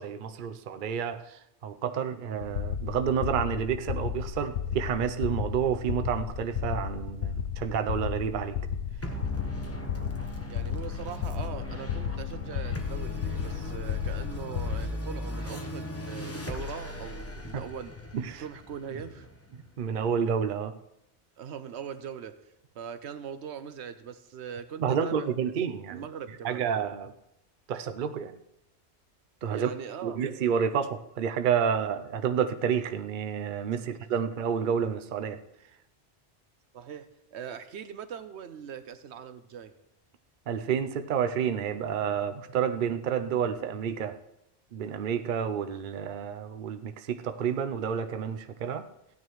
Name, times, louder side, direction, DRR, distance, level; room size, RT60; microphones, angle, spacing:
voice 1, 0.0-8.6 17.5-17.6 18.1-18.4 19.5-20.7 24.8-26.0 26.4-27.1 27.7-28.4 29.4-29.7 30.0-35.4 40.5-44.2 44.7-48.9, right 7 dB, 55° right, 0.7 m, -29 dB
sound 1, 2.4-14.9, left 8 dB, 70° left, 0.9 m, -34 dB
sound 2, 9.0-19.8, left 1 dB, 15° left, 0.9 m, -38 dB
voice 2, 10.5-17.9 18.3-19.3 21.4-22.4 22.7-25.3 25.9-26.7 29.5-30.2 33.9-34.0 36.7-39.7, right 8 dB, 75° right, 0.9 m, -41 dB
15.5 x 9.5 x 3.1 m
omnidirectional pair, 1.2 m